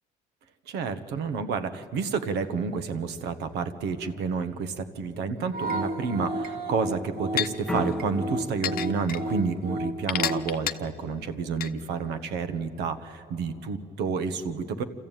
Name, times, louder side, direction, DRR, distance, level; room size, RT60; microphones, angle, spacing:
voice 1, 0.7-14.8, right 5 dB, 85° right, 11 dB, 1.3 m, -30 dB
sound 1, 5.5-10.5, right 1 dB, 60° right, 1.5 m, -32 dB
sound 2, 6.4-6.5 7.4-7.5 8.6-9.2 10.1-10.7 11.6-11.7, left 11 dB, 60° left, 0.8 m, -28 dB
sound 3, 7.7-10.6, left 1 dB, 5° left, 0.6 m, -37 dB
26.5 x 14.5 x 9.1 m, 2.9 s
cardioid pair, 110°, 17 cm